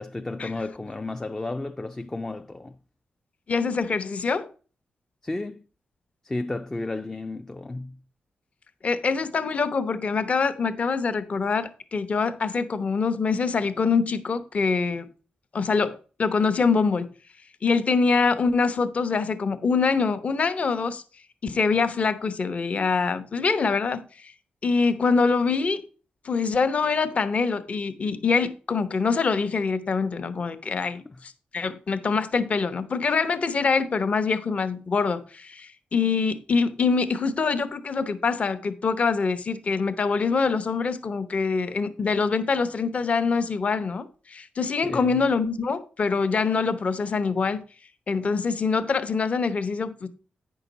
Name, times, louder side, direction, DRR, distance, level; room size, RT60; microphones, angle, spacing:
voice 1, 0.0-2.8 5.2-5.6 6.2-8.0 31.1-31.2 44.9-45.2, left 2 dB, 15° left, 0.3 m, -33 dB
voice 2, 3.5-4.5 8.8-15.1 15.5-17.1 17.6-21.0 21.4-24.1 24.6-25.8 26.2-47.6 48.1-50.1, left 4 dB, 45° left, 0.8 m, -24 dB
9.0 x 5.7 x 3.9 m
wide cardioid pair, 125°, 3 cm